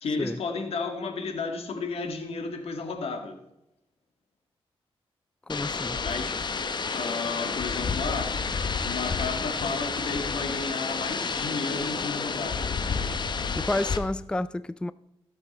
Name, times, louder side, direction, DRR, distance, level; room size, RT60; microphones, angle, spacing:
voice 1, 0.0-3.4 6.0-6.4 6.9-8.3 8.8-12.7, left 4 dB, 80° left, 1.9 m, -32 dB
sound 1, 5.5-14.0, left 5 dB, 45° left, 0.9 m, -30 dB
voice 2, 5.5-6.0 13.6-14.9, left 2 dB, 10° left, 0.4 m, -30 dB
16.0 x 7.0 x 4.2 m
cardioid pair, 80°, 10 cm